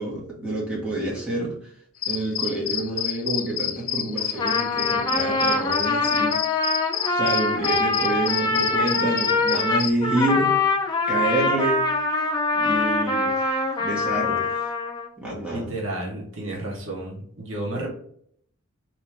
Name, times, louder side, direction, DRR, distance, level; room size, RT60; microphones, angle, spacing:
voice 1, 0.0-1.5 2.1-6.4 7.1-10.6 11.1-11.8 12.5-14.7 15.2-15.7, right 1 dB, 5° right, -6 dB, 1.2 m, -28 dB
sound 1, 2.0-9.9, left 9 dB, 75° left, 0.5 m, -28 dB
Trumpet, 4.2-15.1, left 3 dB, 20° left, 0.4 m, -24 dB
voice 2, 15.5-17.9, right 1 dB, 60° right, -2 dB, 1.0 m, -31 dB
3.2 x 3.0 x 3.3 m, 0.63 s
head